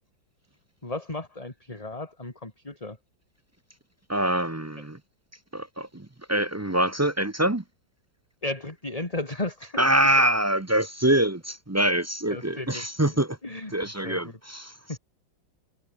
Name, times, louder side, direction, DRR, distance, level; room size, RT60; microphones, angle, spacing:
voice 1, 0.8-3.0 4.8-4.9 8.4-9.9 12.3-14.4 14.9-15.0, left 2 dB, 20° left, 3.1 m, -35 dB
voice 2, 4.1-5.0 5.5-7.6 9.8-13.4 13.7-14.7, right 1 dB, 20° right, 0.4 m, -24 dB
omnidirectional pair, 2.0 m